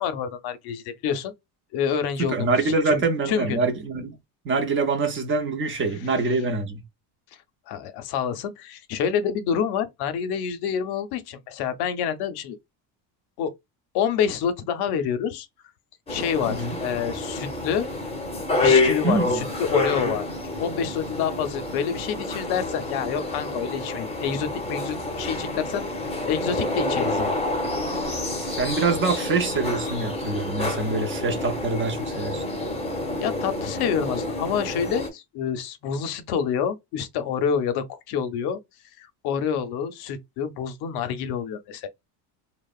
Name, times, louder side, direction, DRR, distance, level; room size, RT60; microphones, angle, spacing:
voice 1, 0.0-1.3 1.7-3.6 7.7-12.6 13.4-13.5 13.9-15.5 16.1-16.6 16.8-17.9 18.6-20.2 20.6-25.8 26.3-27.4 33.2-38.6 39.0-41.9, left 7 dB, 65° left, 0.6 m, -27 dB
voice 2, 2.2-4.2 4.4-6.8 16.5-16.8 19.0-19.5 28.4-32.4, right 3 dB, 30° right, 0.5 m, -25 dB
sound 1, 16.1-35.1, left 2 dB, 15° left, 0.6 m, -28 dB
2.8 x 2.1 x 2.3 m
cardioid pair, 140°, 42 cm